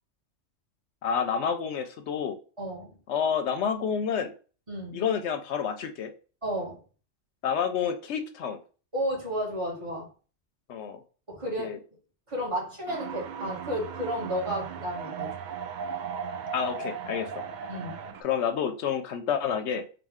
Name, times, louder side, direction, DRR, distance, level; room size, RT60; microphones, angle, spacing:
voice 1, 1.0-2.4 3.1-4.3 4.9-6.1 7.4-8.6 10.7-11.0 11.6-11.8 16.5-17.3 18.2-19.8, left 7 dB, 75° left, 8 dB, 0.8 m, -29 dB
voice 2, 2.6-3.0 4.7-5.0 6.4-6.8 8.9-10.1 11.3-11.8 12.3-15.3 17.7-18.0, equal, 25° right, -4 dB, 1.9 m, -32 dB
sound 1, 12.9-18.2, right 6 dB, 60° right, 0.5 m, -36 dB
4.1 x 2.8 x 3.5 m, 0.38 s
omnidirectional pair, 1.2 m